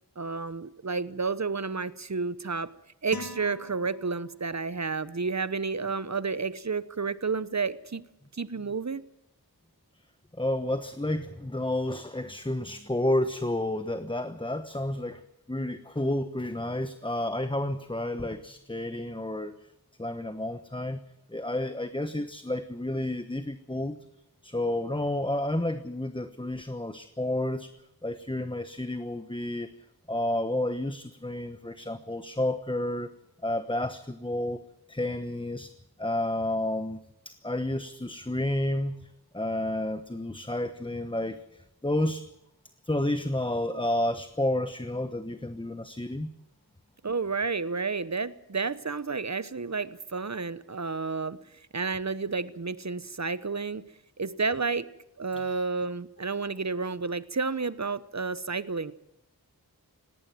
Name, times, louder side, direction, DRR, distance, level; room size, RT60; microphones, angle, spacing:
voice 1, 0.2-2.7 3.0-8.1 8.3-9.1 47.0-54.9 55.2-58.9, right 4 dB, 45° right, 1.0 m, -31 dB
sound 1, 3.1-4.6, left 2 dB, 65° left, 1.7 m, -43 dB
voice 2, 10.4-15.2 15.5-19.5 20.0-21.0 21.3-24.0 24.4-27.7 28.0-29.7 30.1-33.1 33.4-34.6 34.9-35.7 36.0-37.0 37.2-38.9 39.3-42.2 42.9-46.3, left 1 dB, 15° left, 1.1 m, -30 dB
18.5 x 17.5 x 9.1 m
wide cardioid pair, 50°, 38 cm